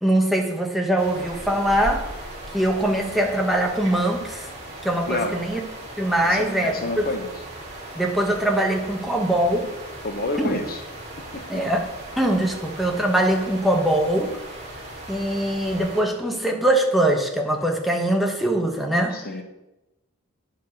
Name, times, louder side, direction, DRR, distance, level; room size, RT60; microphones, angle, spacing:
voice 1, 0.0-2.1 2.5-4.5 4.8-5.6 6.0-7.1 7.9-9.7 10.4-10.6 11.5-11.9 12.2-14.3 15.1-19.2, right 1 dB, ahead, 1 dB, 1.1 m, -22 dB
sound 1, 1.0-16.0, right 1 dB, 30° right, 2.4 m, -38 dB
voice 2, 6.2-7.3 10.0-10.8 11.3-11.7 19.1-19.4, left 2 dB, 45° left, 5 dB, 0.9 m, -29 dB
10.5 x 4.8 x 6.3 m, 0.99 s
head